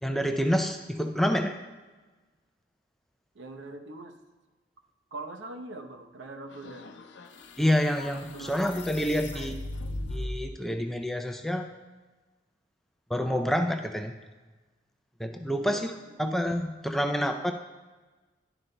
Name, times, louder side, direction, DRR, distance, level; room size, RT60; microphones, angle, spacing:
voice 1, 0.0-1.6 7.6-9.5 10.1-11.7 13.1-14.2 15.2-15.9 16.2-17.5, equal, ahead, 5 dB, 0.4 m, -28 dB
voice 2, 3.3-4.1 5.1-6.9 8.3-8.6 9.3-9.5 15.6-16.4, right 2 dB, 75° right, 5 dB, 0.8 m, -42 dB
sound 1, 6.5-10.5, left 1 dB, 70° left, 0.6 m, -38 dB
11.0 x 11.0 x 2.2 m, 1.2 s
head